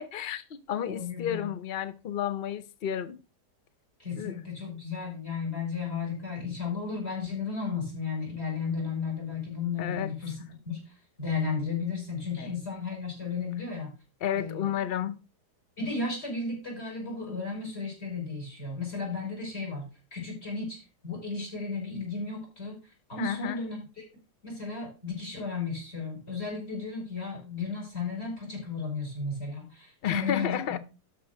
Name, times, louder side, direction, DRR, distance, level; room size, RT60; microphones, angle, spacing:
voice 1, 0.0-3.2 4.2-4.4 9.8-10.1 12.4-12.5 14.2-15.1 23.2-23.6 30.0-30.8, left 9 dB, 60° left, 0.6 m, -32 dB
voice 2, 0.9-1.5 4.0-13.9 14.3-14.7 15.8-19.9 20.1-20.8 21.0-24.0 24.4-30.8, left 4 dB, 35° left, 5.8 m, -34 dB
12.0 x 4.6 x 6.5 m
omnidirectional pair, 1.8 m